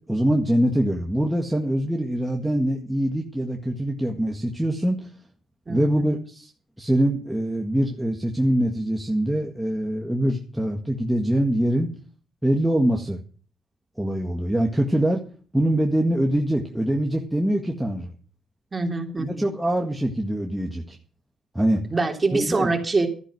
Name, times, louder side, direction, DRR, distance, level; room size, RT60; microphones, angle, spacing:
voice 1, 0.1-5.1 5.7-6.5 6.8-11.9 12.4-13.2 14.0-15.2 15.5-18.1 19.2-21.0 21.6-21.8 22.3-22.7, right 1 dB, 5° right, 0 dB, 1.8 m, -23 dB
voice 2, 5.7-6.1 18.7-19.4 21.9-23.1, right 3 dB, 25° right, 2 dB, 3.4 m, -25 dB
12.5 x 10.0 x 6.4 m, 0.41 s
cardioid pair, 90°, 0 cm